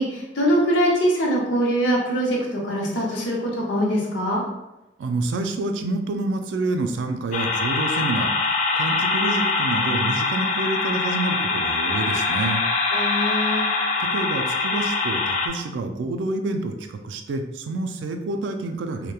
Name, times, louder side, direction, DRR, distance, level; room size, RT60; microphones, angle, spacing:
voice 1, 0.0-4.4 12.9-13.7, equal, 85° left, -3 dB, 0.7 m, -23 dB
voice 2, 5.0-12.6 14.0-19.1, right 2 dB, 80° right, 6 dB, 0.3 m, -28 dB
sound 1, 7.3-15.5, left 3 dB, 40° left, 0.3 m, -23 dB
2.8 x 2.1 x 2.3 m, 0.95 s
head